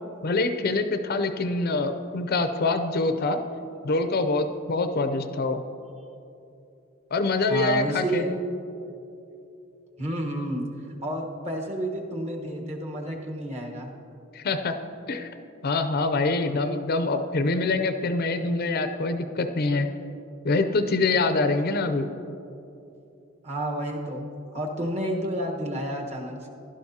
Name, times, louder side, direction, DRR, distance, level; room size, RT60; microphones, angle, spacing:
voice 1, 0.2-3.4 3.8-5.6 7.1-8.2 14.3-14.8 15.1-15.3 15.6-19.9 20.4-22.1, left 3 dB, 45° left, 8 dB, 0.5 m, -25 dB
voice 2, 7.5-8.4 10.0-10.7 11.0-13.9 23.4-24.2 24.5-26.5, right 1 dB, 30° right, 0 dB, 1.2 m, -30 dB
16.0 x 11.5 x 2.8 m, 2.8 s
head